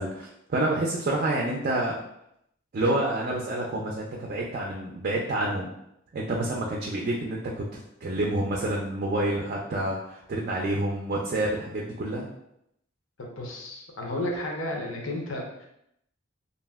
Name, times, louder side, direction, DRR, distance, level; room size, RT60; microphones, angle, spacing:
voice 1, 0.0-2.0 2.7-5.7 6.1-12.3, right 1 dB, 45° right, -1 dB, 0.4 m, -28 dB
voice 2, 13.2-15.7, left 1 dB, 80° left, 0 dB, 0.7 m, -33 dB
2.6 x 2.1 x 3.4 m, 0.77 s
head